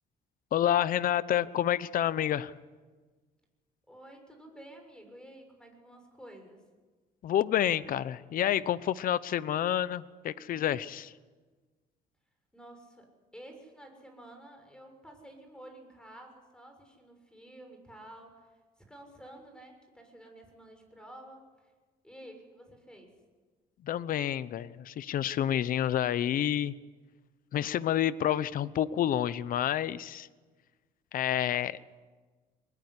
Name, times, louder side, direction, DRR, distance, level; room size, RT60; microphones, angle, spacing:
voice 1, 0.5-2.5 7.2-11.1 23.8-26.7 27.5-30.3 31.1-31.8, left 11 dB, 55° left, 16 dB, 0.9 m, -29 dB
voice 2, 3.9-6.6 12.5-18.6 18.9-21.7 22.0-23.1, right 1 dB, 5° left, 5 dB, 6.8 m, -51 dB
23.0 x 20.5 x 9.9 m, 1.3 s
cardioid pair, 110°, 17 cm